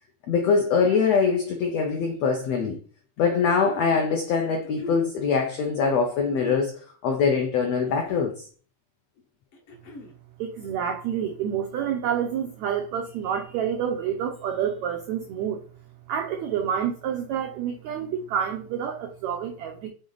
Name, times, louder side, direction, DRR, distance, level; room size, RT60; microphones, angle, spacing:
voice 1, 0.3-2.8 3.2-8.5, left 5 dB, 85° left, 1.4 m, -23 dB
sound 1, 3.2-3.9 4.6-5.1 6.2-6.7 7.7-8.4 9.5-10.2, left 1 dB, 65° left, 1.5 m, -41 dB
voice 2, 10.4-15.6 16.1-19.9, right 8 dB, 90° right, 1.6 m, -28 dB
6.8 x 3.9 x 3.9 m
omnidirectional pair, 4.1 m